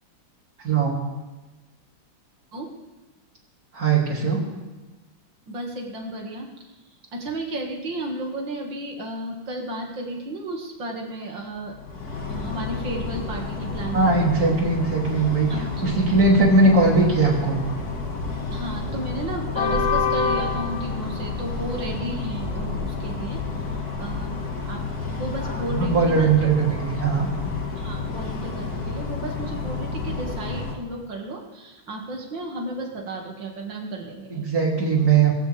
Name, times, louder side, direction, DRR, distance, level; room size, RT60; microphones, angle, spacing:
voice 1, 0.6-1.1 3.7-4.4 13.9-17.6 25.7-27.3 34.3-35.3, right 3 dB, 45° right, -2 dB, 3.7 m, -20 dB
voice 2, 5.5-11.8 12.3-14.5 15.5-16.1 18.5-23.6 24.0-26.5 27.7-34.5, right 1 dB, 65° right, 1 dB, 2.8 m, -33 dB
sound 1, 11.6-30.7, left 4 dB, 50° left, 2.3 m, -29 dB
23.0 x 15.5 x 3.5 m, 1.2 s
omnidirectional pair, 2.2 m